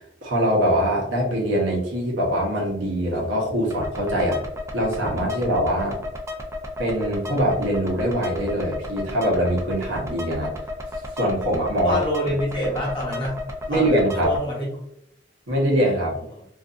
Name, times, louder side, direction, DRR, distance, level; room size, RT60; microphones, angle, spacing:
voice 1, 0.2-4.4 4.7-6.0 6.8-10.5 11.1-12.0 13.7-14.3 15.5-16.1, equal, 75° right, -3 dB, 0.9 m, -23 dB
sound 1, 3.7-14.4, left 2 dB, 15° right, 0.3 m, -33 dB
voice 2, 11.8-13.4 13.7-14.7 16.3-16.4, left 1 dB, 25° left, -4 dB, 1.0 m, -27 dB
2.6 x 2.5 x 2.5 m, 0.72 s
head